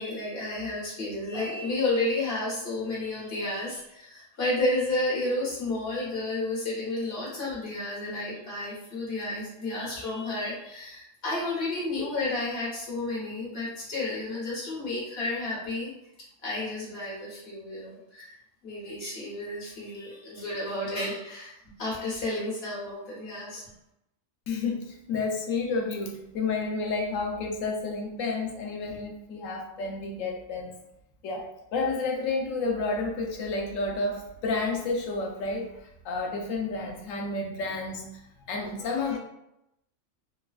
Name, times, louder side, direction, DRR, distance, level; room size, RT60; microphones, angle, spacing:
voice 1, 0.0-15.9 16.4-18.4 18.6-23.6, left 2 dB, 50° left, -6 dB, 1.4 m, -31 dB
voice 2, 24.5-30.8 31.2-35.8 36.0-38.1 38.5-39.2, left 3 dB, 80° left, 1 dB, 1.0 m, -30 dB
3.1 x 2.2 x 2.3 m, 0.83 s
omnidirectional pair, 1.3 m